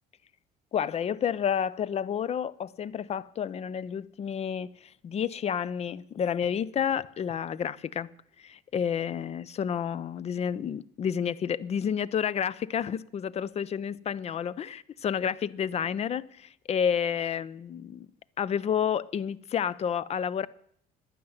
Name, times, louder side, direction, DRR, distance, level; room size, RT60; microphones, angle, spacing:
voice 1, 0.7-8.1 8.4-18.1 18.4-20.5, left 8 dB, 40° left, 0.5 m, -30 dB
11.0 x 9.6 x 7.8 m
cardioid pair, 110°, 17 cm